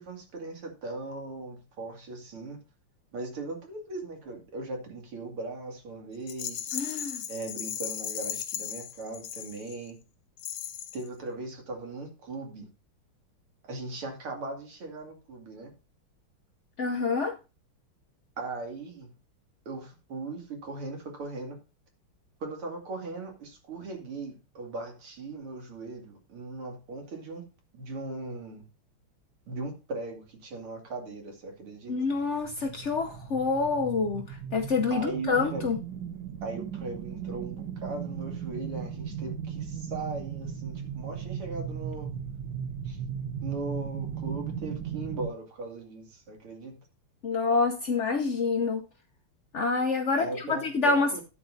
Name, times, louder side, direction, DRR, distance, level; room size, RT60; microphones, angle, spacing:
voice 1, 0.0-2.6 3.1-6.6 7.3-10.0 10.9-12.7 13.7-15.7 18.4-19.1 19.7-21.6 22.4-27.4 27.7-28.6 29.5-31.9 34.9-35.6 36.4-39.7 39.9-42.1 42.9-43.0 43.4-46.8 50.2-51.2, right 3 dB, 80° right, 3.3 m, -38 dB
Rattle, 6.3-9.9 10.4-11.1, left 10 dB, 90° left, 1.9 m, -36 dB
voice 2, 6.7-7.2 16.8-17.3 31.9-35.8 47.2-48.8 49.5-51.2, left 4 dB, 70° left, 0.6 m, -27 dB
sound 1, 32.0-45.3, right 8 dB, 65° right, 1.8 m, -37 dB
13.0 x 9.2 x 2.7 m
omnidirectional pair, 2.4 m